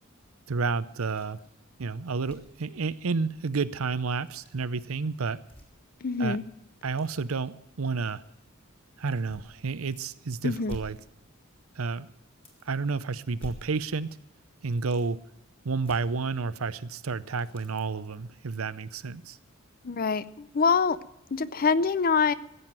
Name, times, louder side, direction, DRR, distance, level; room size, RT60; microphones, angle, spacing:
voice 1, 0.5-1.4 1.8-5.4 6.2-6.4 6.8-8.2 9.0-11.0 11.8-12.1 12.7-14.1 14.6-15.2 15.6-19.4, right 4 dB, 85° right, 15 dB, 0.7 m, -30 dB
sound 1, 1.1-1.5 1.8-1.9 2.2-2.6 4.1-4.5 5.4-6.0 6.3-7.2 8.1-8.2 9.3-10.1 10.4-11.6 11.9-12.0 12.3-12.9 13.3-14.2 14.5-15.1 15.8-16.7 17.1-18.3 18.8-18.9 19.4-19.5, equal, 25° left, 3.5 m, -49 dB
voice 2, 6.0-6.4 10.4-10.8 19.8-21.0 21.3-22.3, left 5 dB, 45° left, 17 dB, 0.5 m, -25 dB
15.5 x 7.9 x 9.0 m, 0.83 s
head